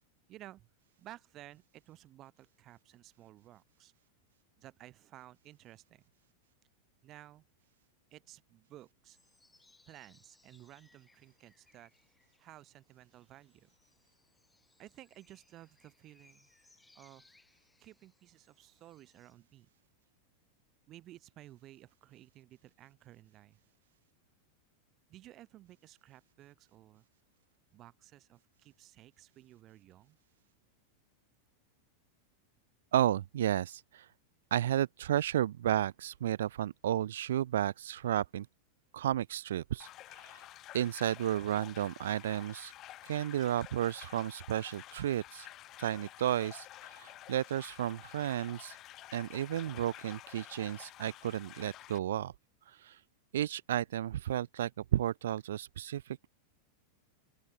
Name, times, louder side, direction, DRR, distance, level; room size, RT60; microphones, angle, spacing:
voice 1, 0.3-0.7 1.0-3.9 4.6-6.0 7.0-7.4 8.1-9.2 9.9-11.9 12.4-13.7 14.8-16.5 16.9-17.3 17.8-19.7 20.9-23.6 25.1-27.0 27.7-30.2, right 14 dB, 35° right, 7.6 m, -55 dB
sound 1, 9.1-19.3, left 3 dB, 10° left, 6.8 m, -68 dB
voice 2, 32.9-34.1 34.5-38.5 38.9-39.9 40.2-40.4 40.7-42.7 43.0-45.5 45.8-48.8 49.1-52.3 52.7-53.0 53.3-56.3, right 11 dB, 60° right, 0.5 m, -33 dB
sound 2, 39.8-52.0, left 15 dB, 35° left, 2.5 m, -51 dB
open air
figure-of-eight pair, 90°, 0 cm